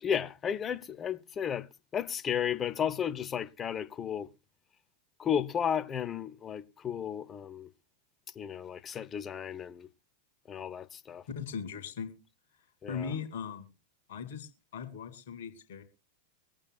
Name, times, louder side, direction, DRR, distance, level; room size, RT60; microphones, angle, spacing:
voice 1, 0.0-4.3 5.2-7.7 8.4-9.9 10.5-11.2 12.8-13.1, left 8 dB, 25° left, 0.9 m, -33 dB
voice 2, 11.3-12.1 12.9-13.7 14.1-15.8, left 6 dB, 55° left, 2.7 m, -39 dB
24.0 x 8.8 x 2.4 m
figure-of-eight pair, 90°, 0 cm